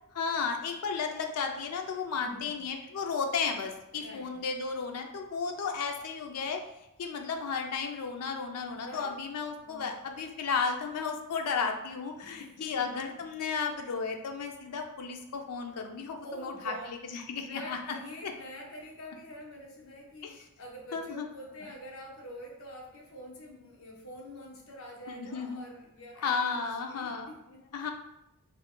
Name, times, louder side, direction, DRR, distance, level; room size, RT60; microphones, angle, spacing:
voice 1, 0.1-6.6 7.0-17.8 18.2-18.3 20.2-20.3 20.9-21.3 25.1-25.6 26.2-27.3 27.7-27.9, left 5 dB, 90° left, 4 dB, 0.4 m, -33 dB
voice 2, 2.2-2.6 3.9-4.4 8.7-9.1 9.6-9.9 12.2-12.9 13.2-13.3 16.2-27.6, equal, 65° left, -1 dB, 0.8 m, -46 dB
3.6 x 2.1 x 3.6 m, 0.89 s
head